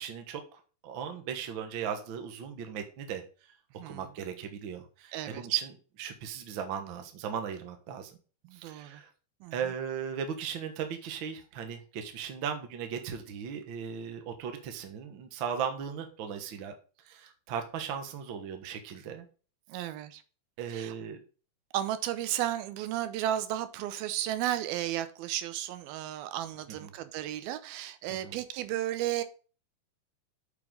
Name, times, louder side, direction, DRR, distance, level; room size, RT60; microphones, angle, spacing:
voice 1, 0.0-3.2 3.9-5.6 6.0-8.2 8.5-9.1 9.5-16.7 17.0-19.2 20.6-21.2 26.8-26.9 28.2-28.3, right 7 dB, 60° right, 6 dB, 1.2 m, -37 dB
voice 2, 3.8-4.1 5.1-5.6 8.4-9.0 9.4-9.6 19.7-20.2 20.7-20.9 21.7-29.2, right 12 dB, 90° right, 12 dB, 2.7 m, -33 dB
8.6 x 6.8 x 3.8 m, 0.36 s
omnidirectional pair, 4.2 m